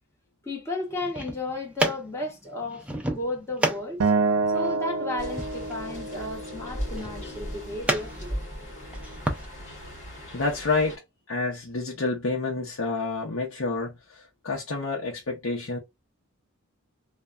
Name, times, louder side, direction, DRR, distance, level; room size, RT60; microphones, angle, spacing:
voice 1, 0.4-4.1 4.5-8.4, left 2 dB, 15° left, 1.1 m, -33 dB
sound 1, 0.9-9.4, right 1 dB, 5° right, 0.5 m, -33 dB
Acoustic guitar, 4.0-7.3, right 3 dB, 80° right, 0.4 m, -27 dB
sound 2, 5.2-11.0, equal, 35° left, 1.6 m, -38 dB
voice 2, 10.3-11.0 11.3-15.8, left 3 dB, 75° left, 0.7 m, -29 dB
3.2 x 2.1 x 2.3 m
head